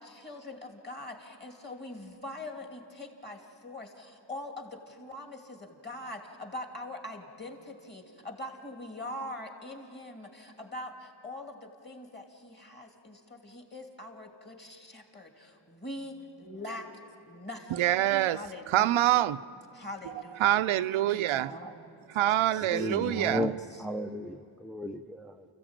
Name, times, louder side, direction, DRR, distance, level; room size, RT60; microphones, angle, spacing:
voice 1, 0.0-16.9 17.2-18.0 18.3-19.1 19.7-20.5 21.1-22.1 22.5-23.8, left 1 dB, 20° left, 2.6 m, -43 dB
voice 2, 17.8-18.4 18.7-19.4 20.4-21.5 22.2-23.5, right 13 dB, 80° right, 0.6 m, -25 dB
voice 3, 22.6-25.5, left 1 dB, ahead, 0.4 m, -34 dB
30.0 x 15.0 x 8.9 m
wide cardioid pair, 120°, 48 cm